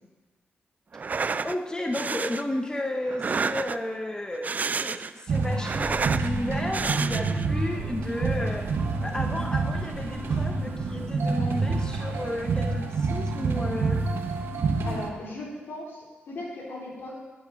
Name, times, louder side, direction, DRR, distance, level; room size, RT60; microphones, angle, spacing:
sound 1, 0.9-1.6 1.9-2.4 3.1-3.9 4.3-5.2 5.5-6.3 6.7-7.5, right 4 dB, 45° right, 0.4 m, -30 dB
voice 1, 1.4-8.7 9.0-14.0, left 1 dB, 20° left, 3 dB, 1.0 m, -33 dB
sound 2, 5.3-15.1, right 3 dB, 70° right, 1.3 m, -28 dB
voice 2, 14.8-17.2, left 1 dB, 75° left, -4 dB, 3.9 m, -37 dB
12.5 x 10.0 x 4.2 m, 1.2 s
cardioid pair, 65°, 4 cm